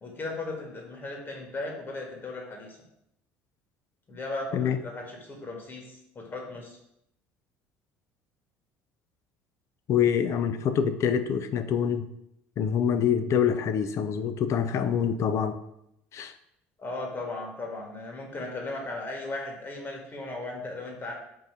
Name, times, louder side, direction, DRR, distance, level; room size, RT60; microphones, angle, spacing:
voice 1, 0.0-2.8 4.1-6.8 16.8-21.1, left 2 dB, 35° left, 0 dB, 1.6 m, -37 dB
voice 2, 9.9-12.1 12.6-15.6 16.1-16.3, left 8 dB, 50° left, 10 dB, 0.5 m, -25 dB
3.8 x 2.7 x 4.8 m, 0.79 s
hypercardioid pair, 70°, 6 cm